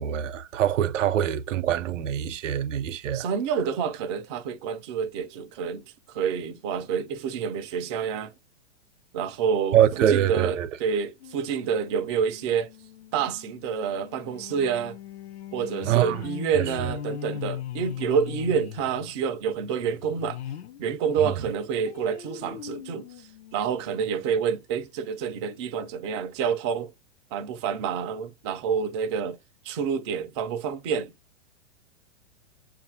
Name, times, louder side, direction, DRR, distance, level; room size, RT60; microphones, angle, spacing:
voice 1, 0.0-3.2 9.7-10.7 15.8-16.3 16.5-16.7 21.2-21.3, right 10 dB, 85° right, 0.6 m, -24 dB
voice 2, 3.1-8.3 9.1-12.7 13.1-15.0 15.5-20.4 20.8-26.9 27.3-29.4 29.6-31.1, right 7 dB, 25° right, 0.3 m, -28 dB
sound 1, 11.2-20.8 21.2-24.3 24.8-24.9 25.2-25.3, left 11 dB, 60° left, 0.6 m, -40 dB
6.9 x 2.5 x 2.7 m
hypercardioid pair, 140°, 36 cm